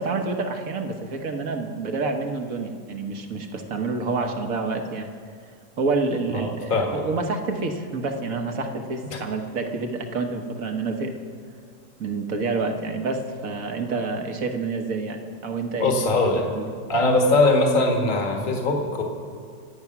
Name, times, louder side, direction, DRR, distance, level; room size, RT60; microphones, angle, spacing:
voice 1, 0.0-5.1 5.8-11.1 12.0-16.0 16.5-16.6, right 3 dB, 55° right, 5 dB, 1.6 m, -28 dB
voice 2, 6.3-7.0 9.1-9.2 15.8-16.5 16.9-19.0, left 2 dB, 30° left, 2 dB, 1.8 m, -21 dB
26.0 x 8.8 x 6.0 m, 2.2 s
omnidirectional pair, 1.8 m